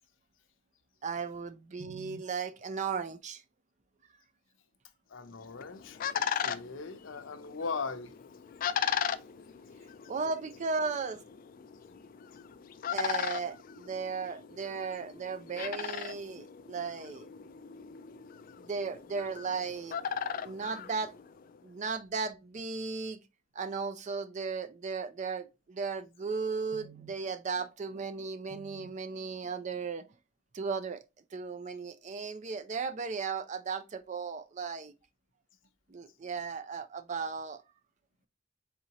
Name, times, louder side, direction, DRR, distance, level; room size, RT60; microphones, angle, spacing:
voice 1, 1.0-3.4 10.1-11.2 12.9-17.3 18.6-20.0 20.4-21.2 21.6-23.2 23.6-30.0 30.5-31.0 31.3-34.9 35.9-37.6, right 5 dB, 40° right, 0.4 m, -36 dB
voice 2, 5.1-8.1, left 4 dB, 80° left, 0.7 m, -39 dB
sound 1, 5.3-21.6, left 8 dB, 45° left, 0.3 m, -38 dB
4.1 x 3.8 x 2.8 m
head